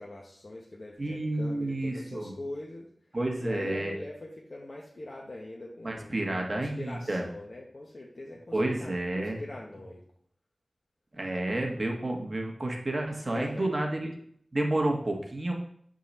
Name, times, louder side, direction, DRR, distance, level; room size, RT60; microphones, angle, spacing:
voice 1, 0.0-2.9 3.4-10.0 13.2-13.7, left 2 dB, 55° left, -2 dB, 0.8 m, -42 dB
voice 2, 1.0-2.3 3.1-3.9 5.8-7.2 8.5-9.4 11.1-14.1 14.5-15.5, right 1 dB, 45° right, 1 dB, 1.2 m, -30 dB
6.6 x 3.8 x 4.2 m, 0.64 s
wide cardioid pair, 60°, 0 cm